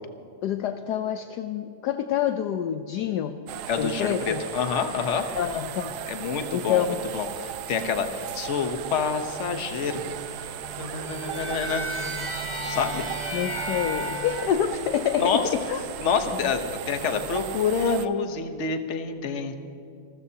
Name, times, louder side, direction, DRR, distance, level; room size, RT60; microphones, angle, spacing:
voice 1, 0.4-3.4 3.8-4.4 5.3-6.1 6.5-7.0 13.3-15.8 16.4-16.5, left 9 dB, 70° left, 8 dB, 1.1 m, -27 dB
sound 1, 3.5-18.1, right 10 dB, 70° right, 1.0 m, -37 dB
voice 2, 3.7-5.3 6.1-10.1 10.8-12.2 12.7-13.1 15.2-15.4 16.0-19.5, left 5 dB, 45° left, 7 dB, 1.1 m, -27 dB
sound 2, 9.8-14.5, equal, 45° right, 2.8 m, -34 dB
28.0 x 14.0 x 2.8 m, 2.6 s
omnidirectional pair, 2.1 m